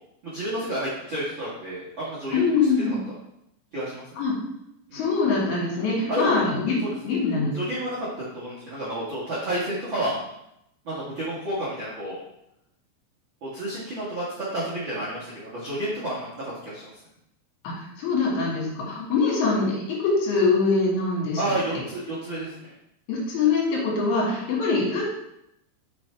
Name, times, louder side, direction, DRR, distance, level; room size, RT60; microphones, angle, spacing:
voice 1, 0.2-2.9 3.7-4.1 4.9-5.0 6.1-6.4 6.8-6.9 7.5-10.2 10.8-12.2 13.4-16.9 21.4-22.5, right 1 dB, 85° right, -8 dB, 1.0 m, -30 dB
voice 2, 2.3-3.0 4.2-4.3 4.9-6.8 7.0-7.5 17.6-21.4 23.1-25.0, left 4 dB, 65° left, -4 dB, 3.6 m, -23 dB
6.2 x 6.1 x 3.4 m, 0.81 s
omnidirectional pair, 5.0 m